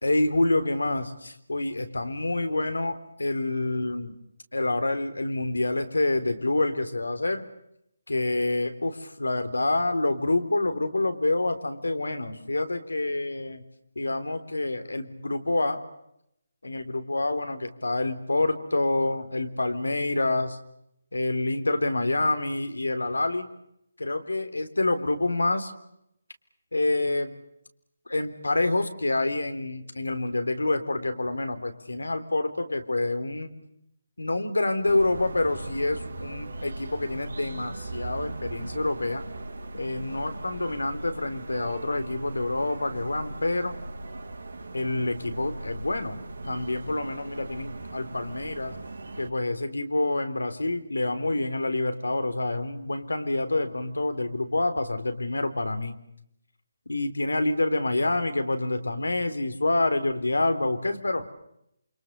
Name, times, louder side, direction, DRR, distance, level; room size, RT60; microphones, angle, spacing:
voice 1, 0.0-4.1 4.5-7.5 8.1-13.6 14.0-15.8 16.6-20.6 21.1-23.5 24.0-25.7 26.7-27.3 28.1-33.5 34.2-39.2 39.7-43.8 44.7-48.8 49.2-56.0 56.9-61.3, left 2 dB, 90° left, 9 dB, 3.8 m, -27 dB
sound 1, 34.9-49.3, right 2 dB, 75° right, 5.2 m, -39 dB
28.5 x 26.5 x 6.8 m, 0.77 s
figure-of-eight pair, 155°, 0 cm